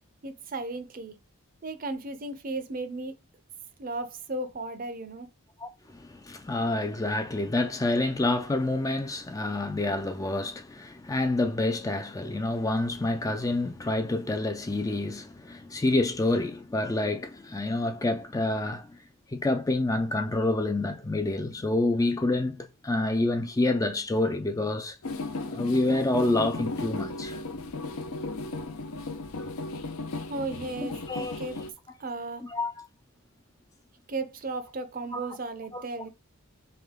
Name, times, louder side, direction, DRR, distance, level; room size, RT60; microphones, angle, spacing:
voice 1, 0.2-1.2 1.6-3.1 3.8-5.3 30.3-31.6 32.0-32.5 34.1-36.1, right 2 dB, 40° right, 0.6 m, -35 dB
voice 2, 5.6-19.0 19.3-25.0 25.5-27.4 29.4-29.5 31.1-31.4 32.4-32.9 35.1-35.4 35.7-35.8, left 2 dB, 15° left, 0.3 m, -28 dB
sound 1, 25.0-31.7, left 2 dB, 75° left, 0.5 m, -35 dB
3.5 x 3.2 x 3.6 m
head